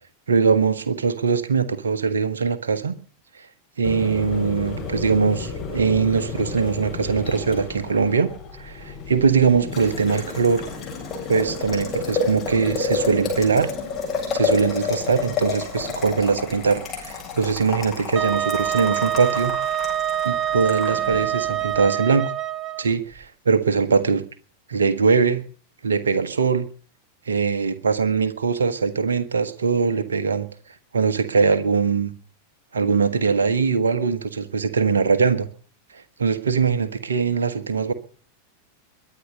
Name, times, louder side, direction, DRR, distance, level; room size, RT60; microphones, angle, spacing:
voice 1, 0.3-2.9 3.8-8.3 8.6-10.6 11.3-13.7 14.3-19.5 20.2-22.3 22.8-24.2 24.7-25.4 25.8-26.7 27.3-30.5 30.9-32.1 32.7-35.5 36.2-37.9, right 5 dB, 70° right, 10 dB, 1.6 m, -21 dB
Boiling, 3.8-21.8, left 4 dB, 30° left, 7.7 m, -30 dB
Wind instrument woodwind instrument, 18.2-22.8, right 11 dB, 25° right, 1.0 m, -25 dB
22.0 x 9.8 x 6.6 m, 0.43 s
figure-of-eight pair, 90°, 0 cm